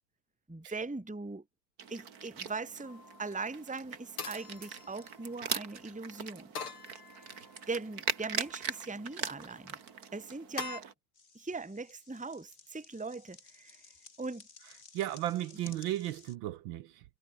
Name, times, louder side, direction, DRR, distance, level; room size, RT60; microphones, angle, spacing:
voice 1, 0.5-1.4 1.9-6.5 7.2-7.3 7.7-9.8 10.1-10.9 11.3-13.8 14.2-14.4, right 3 dB, 5° right, 1.2 m, -40 dB
sound 1, 1.8-10.9, right 7 dB, 45° right, 2.0 m, -41 dB
sound 2, 2.8-3.3 4.2-5.5 6.6-7.6 8.2-8.8 10.6-10.8, left 6 dB, 90° left, 3.6 m, -44 dB
sound 3, 11.1-16.4, left 5 dB, 35° left, 2.3 m, -56 dB
voice 2, 14.9-17.0, right 14 dB, 75° right, 1.4 m, -35 dB
omnidirectional pair, 2.3 m